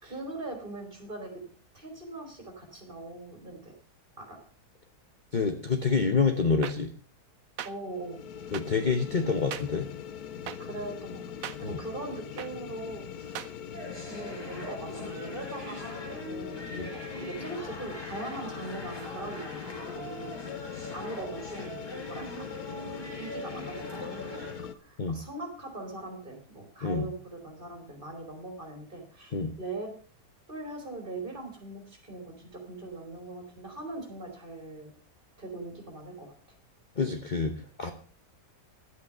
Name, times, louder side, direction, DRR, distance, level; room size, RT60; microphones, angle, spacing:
voice 1, 0.0-1.4 1.7-3.7 4.2-4.4 7.6-8.2 10.6-13.4 14.1-21.8 22.0-22.7 23.2-29.9 30.5-34.9 35.4-36.3, right 2 dB, 30° right, 3 dB, 3.4 m, -41 dB
voice 2, 5.3-6.9 8.5-9.9 11.6-11.8 16.8-16.9 25.0-25.2 26.8-27.1 29.3-29.5 37.0-37.5 37.8-37.9, left 5 dB, 35° left, 7 dB, 0.9 m, -27 dB
sound 1, 6.6-6.7 7.6-7.7 8.5-8.6 9.5-9.6 10.5-10.6 11.4-11.6 12.4-12.5 13.3-13.5, right 10 dB, 65° right, 1.0 m, -36 dB
sound 2, 7.8-24.7, left 9 dB, 70° left, 1.2 m, -41 dB
sound 3, 13.7-24.5, equal, 15° left, 5.6 m, -42 dB
11.5 x 8.4 x 6.6 m, 0.44 s
omnidirectional pair, 1.7 m